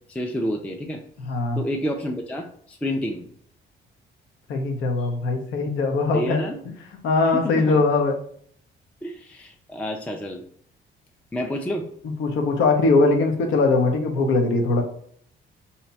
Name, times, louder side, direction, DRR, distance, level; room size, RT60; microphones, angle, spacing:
voice 1, 0.1-1.0 1.6-3.3 6.1-6.6 7.4-7.8 9.0-10.4 11.3-11.9, equal, 5° left, 3 dB, 0.3 m, -29 dB
voice 2, 1.3-1.6 4.5-6.4 7.0-8.1 12.2-14.8, left 3 dB, 85° left, 3 dB, 0.7 m, -21 dB
2.7 x 2.2 x 3.9 m, 0.62 s
cardioid pair, 90°, 20 cm